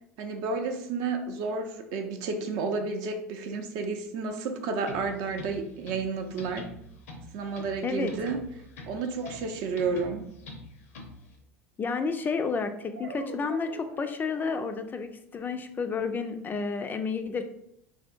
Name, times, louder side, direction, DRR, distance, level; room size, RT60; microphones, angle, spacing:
voice 1, 0.2-6.7 7.3-8.4 8.9-10.3, right 4 dB, 55° right, 5 dB, 0.5 m, -31 dB
sound 1, 4.8-11.4, left 2 dB, 70° left, 0.6 m, -46 dB
sound 2, 9.2-10.2 12.9-14.6, right 2 dB, 85° right, 0.9 m, -44 dB
voice 2, 11.8-17.5, left 4 dB, 25° left, 8 dB, 0.3 m, -31 dB
3.5 x 2.5 x 2.4 m, 0.75 s
hypercardioid pair, 75°, 8 cm